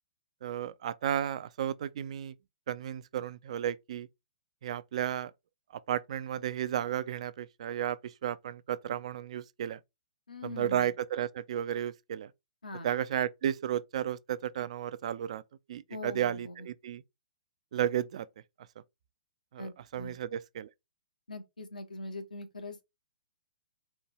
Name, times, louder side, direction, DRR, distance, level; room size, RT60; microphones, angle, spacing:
voice 1, 0.4-2.3 2.7-4.1 4.6-5.3 5.9-9.8 10.4-12.3 12.8-15.4 15.7-17.0 17.7-18.3 19.5-20.7, right 10 dB, 50° right, 0.4 m, -33 dB
voice 2, 10.3-10.9 12.6-12.9 15.9-16.7 19.6-20.2 21.3-22.8, left 2 dB, 75° left, 1.1 m, -42 dB
4.3 x 2.6 x 4.7 m
figure-of-eight pair, 120°, 4 cm